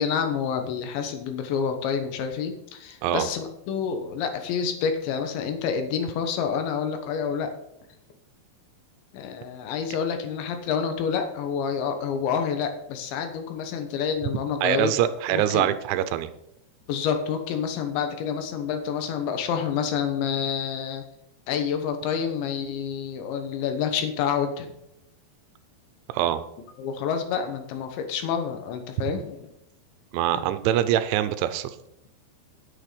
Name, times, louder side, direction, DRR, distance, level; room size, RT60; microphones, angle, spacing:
voice 1, 0.0-7.5 9.1-14.9 15.3-15.7 16.9-21.0 21.5-24.7 26.8-29.5 30.3-30.4, left 7 dB, 75° left, 7 dB, 3.4 m, -28 dB
voice 2, 14.6-16.3 26.1-26.4 29.0-29.1 30.1-31.8, right 11 dB, 85° right, 12 dB, 3.0 m, -24 dB
9.6 x 8.8 x 5.1 m, 0.82 s
omnidirectional pair, 5.3 m